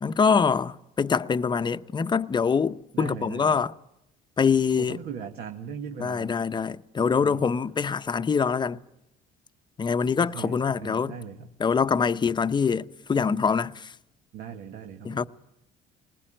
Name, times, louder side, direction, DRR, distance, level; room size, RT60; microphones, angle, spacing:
voice 1, 0.0-3.7 4.4-5.0 6.0-8.8 9.8-11.1 11.6-13.9 15.0-15.3, left 6 dB, 25° left, 0.8 m, -24 dB
voice 2, 2.9-3.6 4.8-6.5 7.1-7.5 10.1-11.5 14.3-15.3, right 7 dB, 75° right, 1.8 m, -39 dB
20.5 x 20.0 x 9.0 m
cardioid pair, 110°, 17 cm